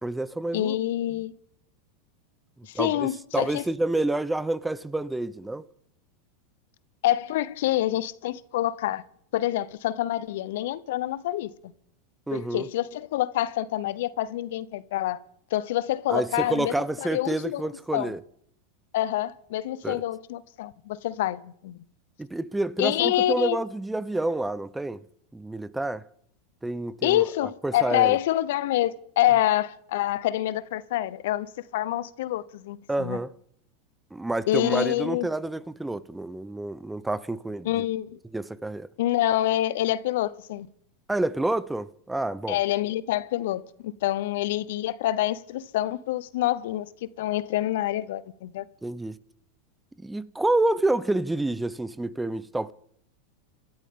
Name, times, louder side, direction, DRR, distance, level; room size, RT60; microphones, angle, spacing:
voice 1, 0.0-0.7 2.7-5.6 12.3-12.7 16.1-18.2 19.8-20.0 22.2-25.0 25.3-26.0 26.6-28.2 32.9-33.3 34.1-37.8 38.3-38.9 41.1-42.6 48.8-49.2 50.0-52.7, right 2 dB, 10° right, 0.7 m, -28 dB
voice 2, 0.5-1.3 2.6-3.6 7.0-9.0 9.3-11.7 12.3-15.2 15.5-18.1 18.9-21.8 22.8-23.6 27.0-31.5 31.7-33.2 34.5-35.3 37.6-38.2 39.0-40.7 42.5-46.9 47.2-48.6, left 14 dB, 70° left, 0.7 m, -27 dB
27.0 x 13.0 x 3.7 m
hypercardioid pair, 100°, 0 cm